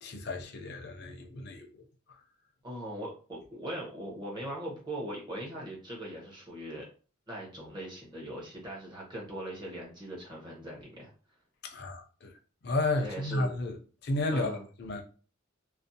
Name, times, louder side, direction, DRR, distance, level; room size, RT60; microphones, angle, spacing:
voice 1, 0.0-1.8 11.6-12.4 12.6-14.5 14.8-15.0, left 2 dB, 55° left, 0.5 m, -32 dB
voice 2, 2.6-6.9 7.3-11.1 13.0-13.5 14.3-14.6, right 1 dB, 20° right, 0.8 m, -40 dB
2.5 x 2.1 x 2.6 m
head